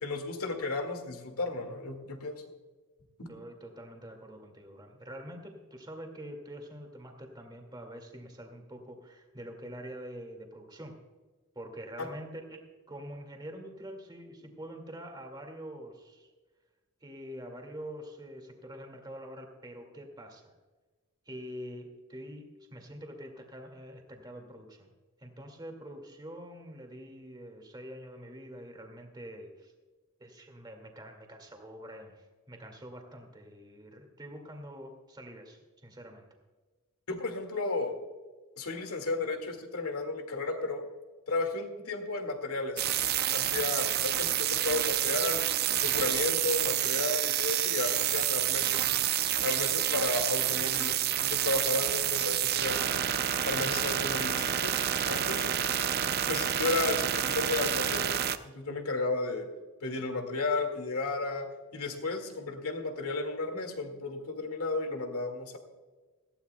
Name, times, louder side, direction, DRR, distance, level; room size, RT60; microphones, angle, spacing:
voice 1, 0.0-2.4 3.2-3.3 12.0-12.1 37.1-37.9 38.6-40.8 41.3-42.9 43.3-45.5 45.8-48.9 49.4-52.8 53.4-55.5 56.3-58.1 58.4-59.5 59.8-61.5 61.7-65.6, left 3 dB, 75° left, 5 dB, 2.0 m, -33 dB
voice 2, 3.3-11.0 11.6-16.3 17.0-20.5 21.3-24.9 25.2-29.7 30.2-36.3 46.1-46.3, equal, 20° right, 3 dB, 2.0 m, -45 dB
sound 1, 42.8-58.4, right 11 dB, 45° right, 0.5 m, -29 dB
18.0 x 15.0 x 2.2 m, 1.3 s
head